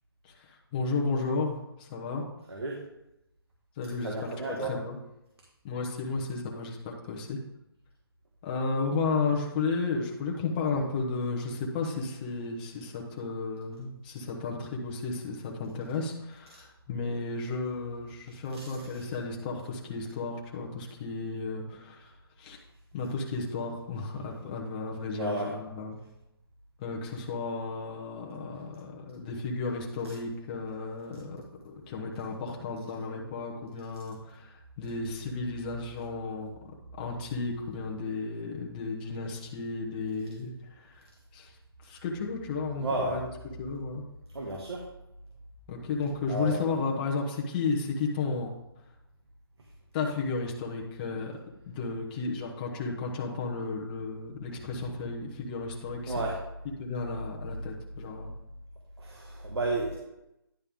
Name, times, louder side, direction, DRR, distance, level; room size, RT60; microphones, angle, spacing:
voice 1, 0.2-2.3 3.8-5.0 5.6-7.4 8.4-22.6 22.9-26.0 26.8-36.5 37.0-41.0 41.3-41.6 41.8-43.3 43.6-44.0 45.7-48.5 49.9-51.3 51.7-56.2 56.8-58.3, left 4 dB, 20° left, -1 dB, 0.9 m, -33 dB
voice 2, 4.0-4.7 18.5-18.6 25.1-25.5 42.8-43.1 44.3-44.8 46.3-46.6 56.1-56.3 59.0-60.0, right 2 dB, 80° right, -2 dB, 1.6 m, -32 dB
10.0 x 5.3 x 3.6 m, 0.90 s
hypercardioid pair, 160°, 13 cm